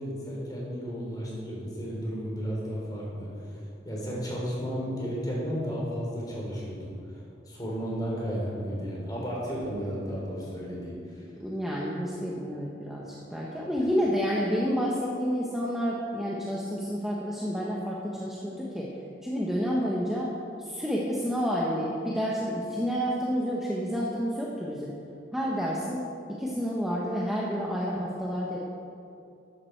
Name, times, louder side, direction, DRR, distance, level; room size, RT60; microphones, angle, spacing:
voice 1, 0.0-3.3 3.8-6.9 7.5-11.0, equal, 20° left, -4 dB, 3.6 m, -33 dB
voice 2, 11.4-18.9 19.2-20.3 20.6-24.9 25.3-26.0 26.4-28.7, equal, ahead, -5 dB, 1.1 m, -29 dB
13.5 x 11.0 x 4.6 m, 2.6 s
head